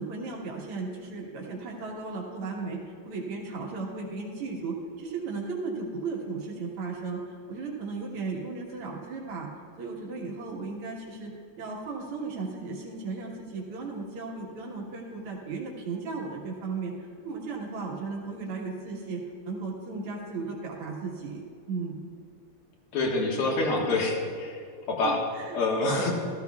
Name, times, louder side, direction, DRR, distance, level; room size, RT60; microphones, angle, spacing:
voice 1, 0.0-2.8 3.0-9.5 9.8-11.3 11.6-21.4 21.7-22.0 25.0-25.6 25.8-26.0, right 4 dB, 90° right, -2 dB, 2.4 m, -35 dB
voice 2, 22.9-24.6 24.9-25.2 25.5-26.1, left 2 dB, 80° left, -1 dB, 2.4 m, -26 dB
14.5 x 14.0 x 2.3 m, 2.3 s
omnidirectional pair, 2.4 m